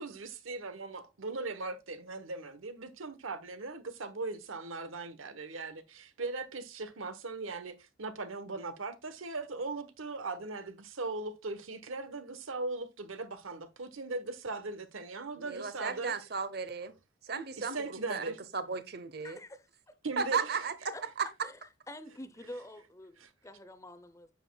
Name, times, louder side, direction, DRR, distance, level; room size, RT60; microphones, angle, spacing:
voice 1, 0.0-16.1 17.6-18.4 20.0-20.4 23.2-23.3, right 3 dB, 85° right, 1.1 m, -39 dB
voice 2, 15.4-17.0 17.2-19.4 20.2-21.5, right 5 dB, 50° right, 0.9 m, -35 dB
voice 3, 19.2-19.9 20.9-21.0 21.4-21.6 21.9-24.3, left 1 dB, 15° left, 0.6 m, -47 dB
9.9 x 7.4 x 2.3 m
head